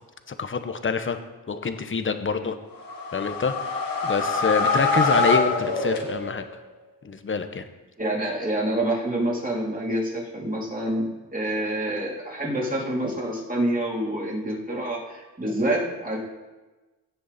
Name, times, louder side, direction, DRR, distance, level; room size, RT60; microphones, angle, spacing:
voice 1, 0.3-1.2 1.5-2.6 3.1-6.4 7.0-7.7, left 5 dB, 30° left, 8 dB, 1.1 m, -26 dB
sound 1, 2.7-6.5, left 3 dB, 60° left, 2.0 m, -24 dB
voice 2, 8.0-16.2, right 1 dB, 20° right, -3 dB, 3.5 m, -27 dB
17.5 x 6.3 x 4.3 m, 1.2 s
cardioid pair, 75°, 38 cm